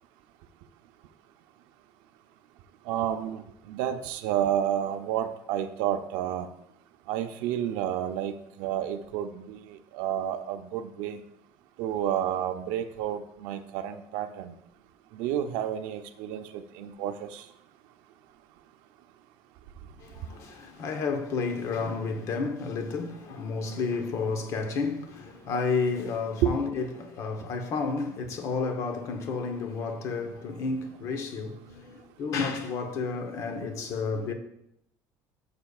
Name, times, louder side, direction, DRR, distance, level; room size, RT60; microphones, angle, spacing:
voice 1, 2.9-6.5 7.1-11.2 11.8-14.5 15.1-17.5 26.4-26.5, right 10 dB, 75° right, 0.5 m, -30 dB
voice 2, 20.0-34.3, left 4 dB, 40° left, 0.9 m, -31 dB
11.5 x 6.8 x 2.4 m
cardioid pair, 180°, 8 cm